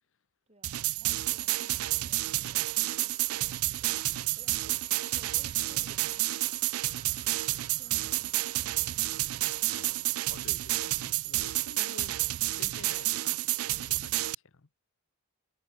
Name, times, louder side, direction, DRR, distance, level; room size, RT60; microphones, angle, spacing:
voice 1, 0.5-4.0 4.4-6.6 7.8-8.8, right 1 dB, 30° right, 6.3 m, -59 dB
sound 1, 0.6-14.3, right 17 dB, 85° right, 0.4 m, -30 dB
sound 2, 1.6-13.6, left 5 dB, 50° left, 2.6 m, -63 dB
sound 3, 2.8-9.7, equal, ahead, 4.2 m, -65 dB
voice 2, 9.6-12.2 12.6-14.7, left 4 dB, 65° left, 0.9 m, -51 dB
head